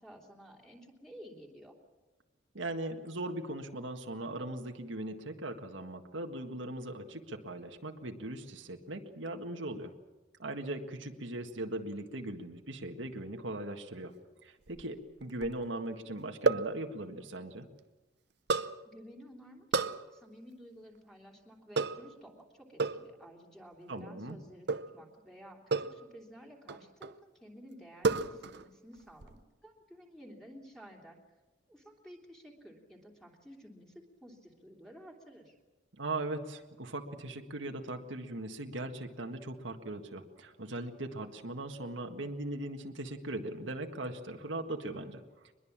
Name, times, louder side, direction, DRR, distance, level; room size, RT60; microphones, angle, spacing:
voice 1, 0.0-1.8 18.8-31.2 31.7-35.5, equal, ahead, 1 dB, 3.1 m, -53 dB
voice 2, 2.5-9.9 10.4-14.1 14.4-17.7 23.9-24.4 36.0-45.2, right 1 dB, 85° right, 4 dB, 1.8 m, -39 dB
sound 1, 14.7-15.7 16.5-16.8 18.5-18.8 19.7-20.0 21.8-22.1 22.8-23.1 24.7-25.0 25.7-26.0 26.7-27.2 28.0-28.7 28.9-29.4, right 4 dB, 60° right, 0.7 m, -31 dB
23.0 x 21.5 x 7.4 m, 1.2 s
head